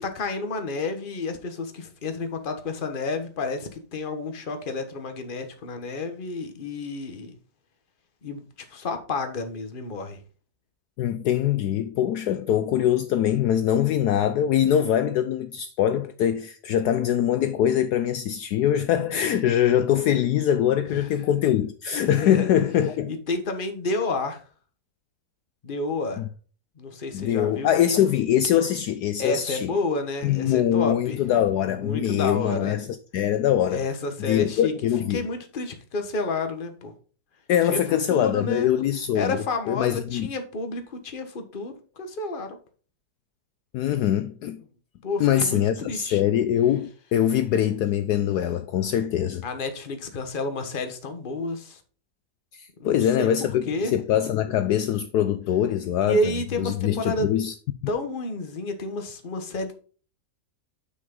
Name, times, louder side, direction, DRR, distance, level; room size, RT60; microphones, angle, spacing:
voice 1, 0.0-7.4 8.2-8.4 8.7-10.2 20.9-21.1 22.0-22.5 23.1-24.4 25.6-26.2 26.8-27.7 29.2-31.2 31.7-32.8 33.7-34.7 35.1-36.9 37.7-37.8 38.1-38.7 39.1-42.6 45.0-46.2 49.4-51.8 52.8-53.3 53.7-54.2 56.0-57.3 57.9-59.8, left 2 dB, 35° left, 1.2 m, -30 dB
voice 2, 11.0-23.1 26.2-26.3 27.1-29.7 30.2-33.8 34.2-35.3 37.5-40.3 43.7-44.6 45.2-49.4 52.5-56.2 56.6-57.5, left 10 dB, 70° left, 1.1 m, -23 dB
7.9 x 6.2 x 3.7 m
omnidirectional pair, 1.9 m